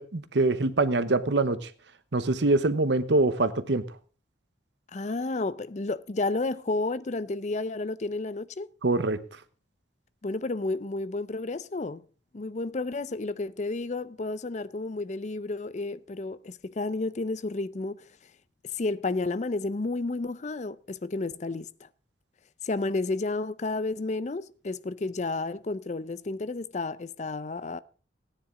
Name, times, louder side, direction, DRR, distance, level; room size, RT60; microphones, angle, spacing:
voice 1, 0.0-1.7 2.1-3.8 8.8-9.2, right 2 dB, 70° right, 0.9 m, -24 dB
voice 2, 4.9-8.7 10.2-12.0 12.3-18.1 18.7-21.9 22.6-27.8, left 3 dB, 40° left, 0.5 m, -31 dB
15.0 x 9.9 x 3.7 m
head